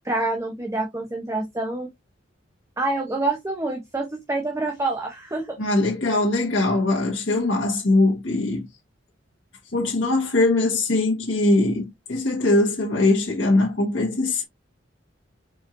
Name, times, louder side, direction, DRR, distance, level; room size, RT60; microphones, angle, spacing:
voice 1, 0.0-1.9 2.8-5.6, right 2 dB, 15° right, 0.7 m, -27 dB
voice 2, 5.6-8.7 9.7-14.4, left 2 dB, 75° left, 1.3 m, -21 dB
4.5 x 4.3 x 2.5 m
head